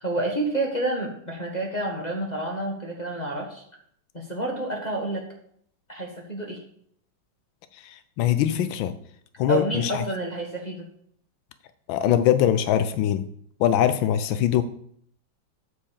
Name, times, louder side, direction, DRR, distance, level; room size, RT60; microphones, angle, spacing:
voice 1, 0.0-3.6 4.1-5.3 5.9-6.6 9.5-10.9, right 2 dB, 25° left, -2 dB, 1.5 m, -29 dB
voice 2, 7.8-8.9 9.4-10.0 11.9-13.2 13.6-14.6, left 10 dB, 85° left, 11 dB, 1.4 m, -22 dB
8.6 x 4.7 x 7.3 m, 0.65 s
omnidirectional pair, 2.1 m